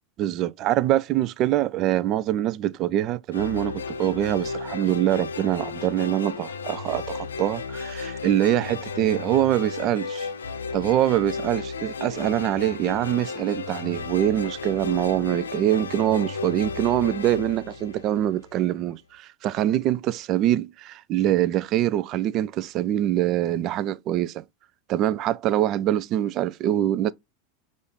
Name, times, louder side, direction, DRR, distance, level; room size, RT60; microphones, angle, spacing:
voice 1, 0.2-10.3 10.7-24.4 24.9-27.1, right 12 dB, 45° right, 0.4 m, -24 dB
sound 1, 3.3-18.6, left 5 dB, 85° left, 0.6 m, -34 dB
5.4 x 2.5 x 3.5 m
hypercardioid pair, 95°, 0 cm